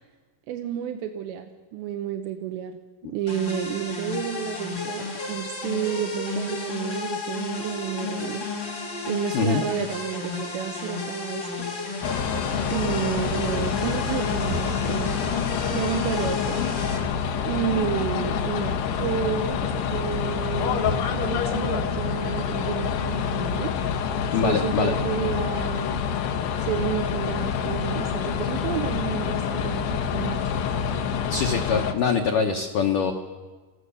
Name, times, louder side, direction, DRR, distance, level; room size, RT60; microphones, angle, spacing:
voice 1, 0.5-8.5 9.0-11.7 12.7-16.6 17.4-23.7 24.4-26.0 26.6-30.4, right 9 dB, 75° right, 5 dB, 3.0 m, -31 dB
sound 1, 3.3-17.0, left 3 dB, 30° left, 2.9 m, -32 dB
sound 2, 12.0-31.9, left 7 dB, 70° left, 3.0 m, -27 dB
sound 3, 14.4-15.1 16.8-17.3 17.6-18.6 18.9-19.3 19.9-21.4, right 2 dB, 60° right, 2.9 m, -37 dB
voice 2, 24.3-24.9 31.3-33.1, left 5 dB, 85° left, 3 dB, 1.8 m, -23 dB
27.5 x 15.0 x 6.9 m, 1.4 s
omnidirectional pair, 5.4 m